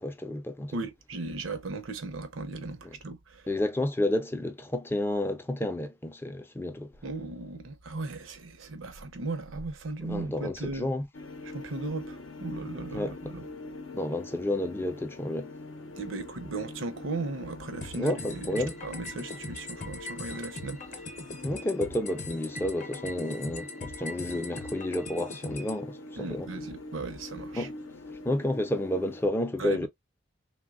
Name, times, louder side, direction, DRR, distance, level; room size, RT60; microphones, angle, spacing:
voice 1, 0.0-0.8 2.8-3.0 3.5-6.9 10.0-11.1 12.9-13.1 13.9-15.5 17.9-18.8 21.4-26.5 27.5-27.7 28.2-29.9, left 1 dB, 10° left, 0.3 m, -30 dB
voice 2, 0.7-3.5 7.0-10.9 11.5-13.4 16.0-20.8 26.2-27.7 29.6-29.9, right 3 dB, 85° right, 0.6 m, -37 dB
sound 1, 11.1-29.3, left 2 dB, 85° left, 0.6 m, -44 dB
sound 2, 17.8-25.8, left 2 dB, 40° left, 0.7 m, -41 dB
3.2 x 2.2 x 2.2 m
head